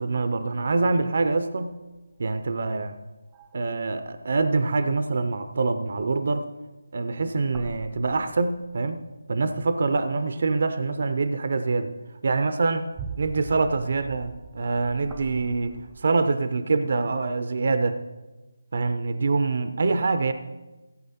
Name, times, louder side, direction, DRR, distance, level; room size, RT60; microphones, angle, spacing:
voice 1, 0.0-1.8 2.2-2.9 3.5-6.5 6.9-11.9 12.2-12.9 13.2-18.0 18.7-20.3, right 3 dB, 55° right, 10 dB, 0.6 m, -25 dB
sound 1, 1.8-3.0 3.3-4.1 7.2-9.2 10.0-11.0 11.7-11.8 12.5-16.0, right 6 dB, 15° right, 0.6 m, -44 dB
15.5 x 8.1 x 4.3 m, 1.1 s
figure-of-eight pair, 160°, 0 cm